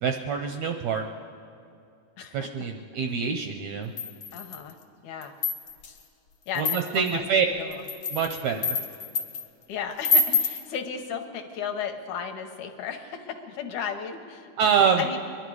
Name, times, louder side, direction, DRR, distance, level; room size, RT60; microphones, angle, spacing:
voice 1, 0.0-1.0 2.3-3.9 6.6-7.5 8.1-8.8 14.6-15.1, right 6 dB, 80° right, 4 dB, 1.6 m, -25 dB
voice 2, 2.2-2.5 4.3-4.8 5.0-5.3 6.5-7.7 9.7-14.5 15.0-15.2, left 7 dB, 75° left, 5 dB, 2.2 m, -35 dB
sound 1, 4.0-4.7 5.2-5.9 6.6-7.1 7.7-9.4 10.0-10.6, left 3 dB, 55° left, 1.5 m, -26 dB
23.0 x 11.0 x 4.8 m, 2.6 s
omnidirectional pair, 3.8 m